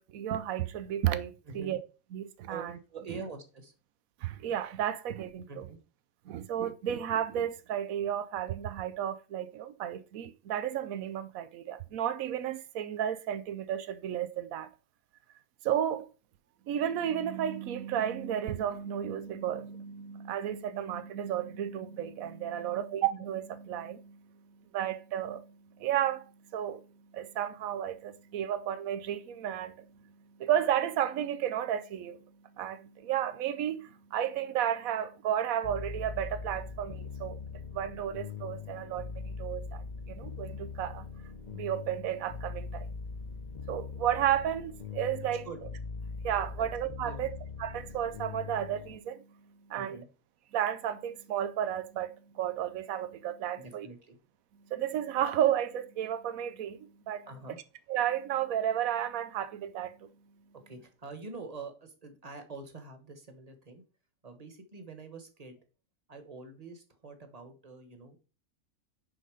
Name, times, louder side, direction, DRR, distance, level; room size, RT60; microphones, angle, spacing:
voice 1, 0.0-1.8 2.1-2.7 4.2-5.6 6.3-14.7 15.6-16.1 16.7-42.9 43.7-45.5 46.1-47.3 47.6-50.0 50.5-53.9 54.6-57.3 57.9-60.1, right 10 dB, 85° right, 1.1 m, -33 dB
voice 2, 1.4-1.7 2.5-3.7 5.5-5.8 45.4-45.6 46.6-46.7 47.0-47.3 49.7-50.1 53.6-54.2 57.3-57.6 60.7-63.8 64.2-65.6 66.1-68.2, right 4 dB, 30° right, 1.3 m, -45 dB
sound 1, 35.6-49.0, left 5 dB, 40° left, 0.7 m, -41 dB
10.0 x 3.9 x 4.9 m
omnidirectional pair, 1.4 m